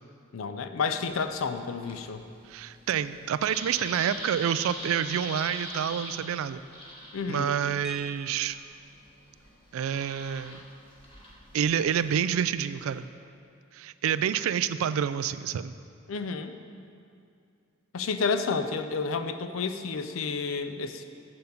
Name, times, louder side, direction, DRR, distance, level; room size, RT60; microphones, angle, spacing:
voice 1, 0.3-2.2 7.1-7.5 16.1-16.5 17.9-21.0, left 4 dB, 70° left, 9 dB, 0.5 m, -30 dB
sound 1, 1.0-13.0, left 1 dB, 25° left, 1.5 m, -44 dB
voice 2, 2.5-6.6 7.3-8.6 9.7-10.6 11.5-13.1 13.7-15.7, right 8 dB, 80° right, 14 dB, 0.3 m, -28 dB
sound 2, 7.8-8.9 10.4-10.5 10.8-11.0 11.4-11.7, right 2 dB, 5° right, 0.4 m, -44 dB
6.9 x 6.7 x 5.2 m, 2.5 s
head